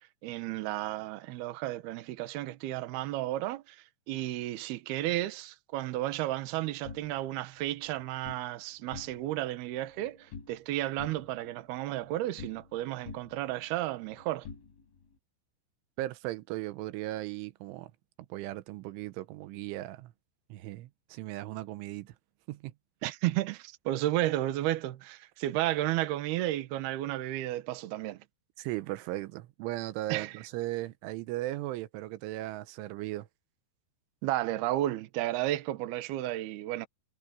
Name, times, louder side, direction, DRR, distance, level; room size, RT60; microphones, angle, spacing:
voice 1, 0.2-14.5 23.0-28.2 30.1-30.4 34.2-36.9, right 15 dB, 70° right, 2.8 m, -33 dB
sound 1, 6.8-8.5 8.8-9.5 9.7-10.7 11.0-12.8 13.1-15.2, left 5 dB, 85° left, 6.8 m, -49 dB
voice 2, 16.0-17.9 18.3-20.1 20.5-22.1 22.5-22.7 28.6-33.3, right 16 dB, 90° right, 3.4 m, -37 dB
omnidirectional pair, 5.4 m